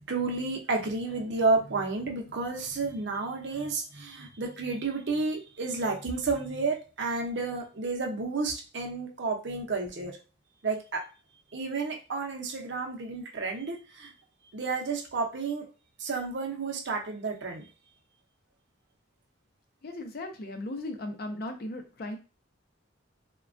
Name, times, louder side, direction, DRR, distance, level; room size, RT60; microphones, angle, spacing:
voice 1, 0.1-10.2 10.6-11.0 11.5-14.1 14.5-15.7 16.0-17.7, right 3 dB, 60° right, 1 dB, 0.6 m, -31 dB
voice 2, 19.8-22.2, left 1 dB, 50° left, 5 dB, 0.5 m, -37 dB
3.2 x 2.2 x 2.5 m, 0.33 s
head